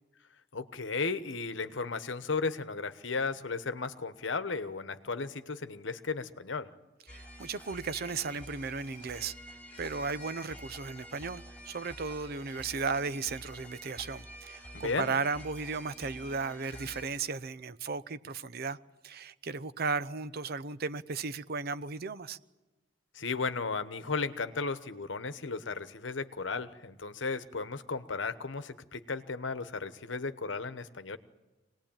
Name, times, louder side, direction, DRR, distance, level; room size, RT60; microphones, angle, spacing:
voice 1, 0.5-6.7 14.7-15.1 23.1-31.2, left 4 dB, 75° left, 1.1 m, -35 dB
sound 1, 7.1-17.1, equal, 10° left, 4.9 m, -48 dB
voice 2, 7.1-18.8 19.0-22.4, right 4 dB, 55° right, 0.7 m, -35 dB
25.0 x 19.0 x 8.9 m
head